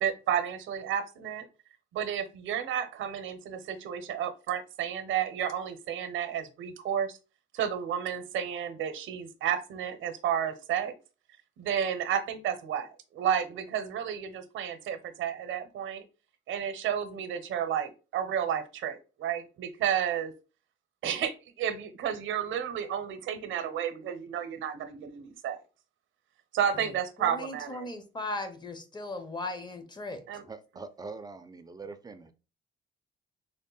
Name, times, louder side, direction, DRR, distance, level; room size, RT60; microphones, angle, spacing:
voice 1, 0.0-1.4 1.9-7.2 7.5-10.9 11.6-12.9 13.1-16.0 16.5-20.3 21.0-25.6 26.5-27.9 30.3-30.4, right 9 dB, 80° right, 0.7 m, -31 dB
voice 2, 27.2-30.2, left 2 dB, 20° left, 0.8 m, -37 dB
voice 3, 30.4-32.3, right 4 dB, 20° right, 0.4 m, -43 dB
3.5 x 2.1 x 3.8 m
cardioid pair, 90°, 20 cm